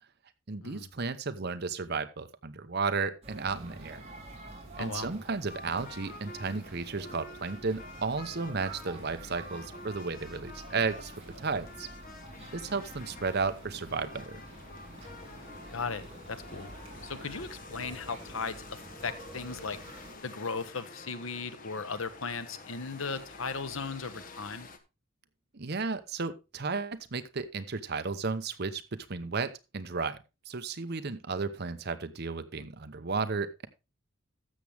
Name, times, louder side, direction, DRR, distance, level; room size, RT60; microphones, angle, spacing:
voice 1, 0.5-4.0 4.8-11.1 11.4-11.9 12.5-14.4 25.5-28.8 29.1-30.2 30.5-33.7, right 4 dB, 50° right, 10 dB, 0.8 m, -33 dB
sound 1, 3.2-20.2, right 1 dB, 30° right, 3.3 m, -48 dB
voice 2, 4.7-5.1 12.4-12.5 15.7-16.0 16.3-16.7 17.0-19.8 20.2-24.7, left 4 dB, 70° left, 12 dB, 1.0 m, -37 dB
sound 2, 5.5-24.8, left 3 dB, 40° left, 1.1 m, -49 dB
12.5 x 7.2 x 3.4 m, 0.27 s
head